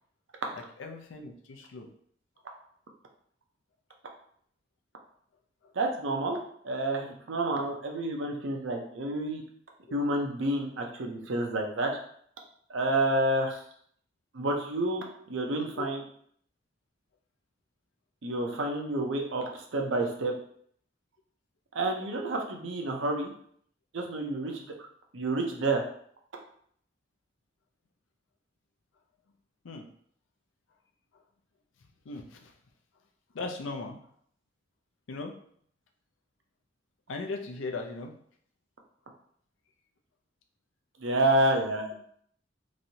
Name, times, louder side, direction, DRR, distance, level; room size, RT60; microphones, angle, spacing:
voice 1, 0.5-1.9 5.6-5.7 9.9-10.0 15.7-15.9 22.0-22.1 29.6-29.9 31.1-31.2 32.0-32.5 33.3-34.0 35.1-35.3 37.1-38.1, left 3 dB, 80° left, 4 dB, 0.5 m, -38 dB
voice 2, 5.8-9.4 9.9-11.9 12.7-13.6 14.3-16.0 18.2-20.3 21.7-23.3 23.9-24.7 25.1-25.8 41.0-42.0, right 1 dB, 70° right, 2 dB, 0.6 m, -29 dB
3.0 x 2.6 x 2.7 m, 0.63 s
head